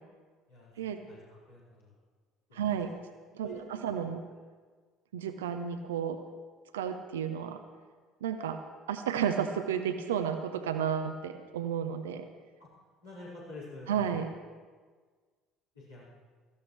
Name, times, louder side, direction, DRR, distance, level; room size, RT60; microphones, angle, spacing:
voice 1, 1.1-1.9 2.5-2.8 3.4-3.9 12.6-12.7 13.0-14.2 15.7-16.1, left 2 dB, 85° left, -12 dB, 5.0 m, -48 dB
voice 2, 2.5-2.9 3.3-4.2 5.1-6.2 6.7-7.6 8.2-8.6 8.9-12.3 13.9-14.3, right 8 dB, 75° right, 7 dB, 0.7 m, -32 dB
17.5 x 14.0 x 3.3 m, 1.5 s
figure-of-eight pair, 60°, 0 cm